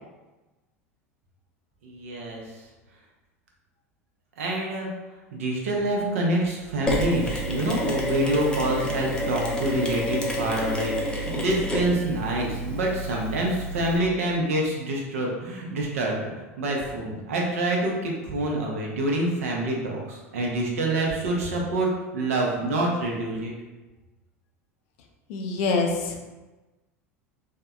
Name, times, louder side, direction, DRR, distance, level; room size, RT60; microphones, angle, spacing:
voice 1, 1.8-2.4 4.4-4.9 5.3-16.2 16.6-23.5, right 1 dB, 75° right, -1 dB, 0.7 m, -26 dB
Mechanisms, 6.9-14.0, equal, 10° left, 0.6 m, -29 dB
voice 2, 25.3-26.3, left 3 dB, 60° left, 2 dB, 0.5 m, -26 dB
3.5 x 2.2 x 2.3 m, 1.2 s
hypercardioid pair, 80°, 8 cm